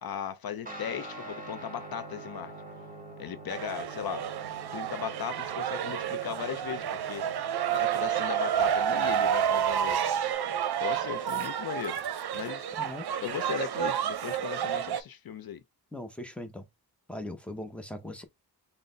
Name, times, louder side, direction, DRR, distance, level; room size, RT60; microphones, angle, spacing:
voice 1, 0.0-2.5 3.2-4.3 4.7-7.3 7.7-10.0 10.8-12.0 12.3-12.7 13.2-15.6, left 9 dB, 70° left, 0.5 m, -37 dB
Guitar, 0.7-10.3, right 1 dB, 20° right, 1.5 m, -47 dB
sound 1, 3.5-15.0, right 9 dB, 75° right, 0.6 m, -30 dB
sound 2, 11.3-12.5, left 5 dB, 50° left, 0.9 m, -53 dB
voice 2, 15.9-16.6 17.1-18.2, left 1 dB, 5° left, 0.6 m, -39 dB
3.9 x 2.1 x 3.8 m
wide cardioid pair, 130°, 39 cm